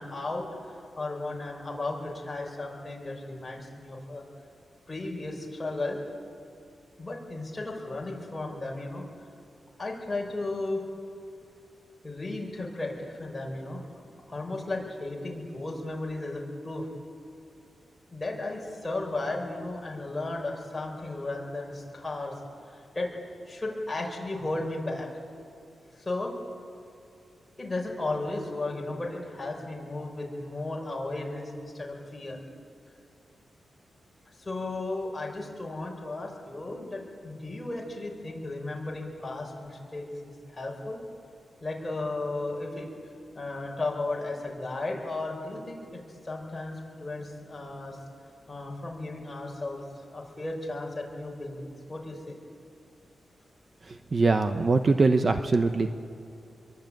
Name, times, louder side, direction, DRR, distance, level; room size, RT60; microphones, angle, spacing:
voice 1, 0.0-4.2 4.9-6.0 7.0-9.1 9.8-10.8 12.0-16.9 18.1-22.4 22.7-23.1 23.5-25.1 25.9-26.3 27.6-32.4 34.4-41.0 41.6-42.9 43.3-48.0 48.5-49.8 50.1-52.4, left 2 dB, 20° left, -1 dB, 5.9 m, -35 dB
voice 2, 54.1-55.9, right 3 dB, 35° right, 8 dB, 1.0 m, -22 dB
26.5 x 23.0 x 9.2 m, 2.6 s
wide cardioid pair, 120°, 0 cm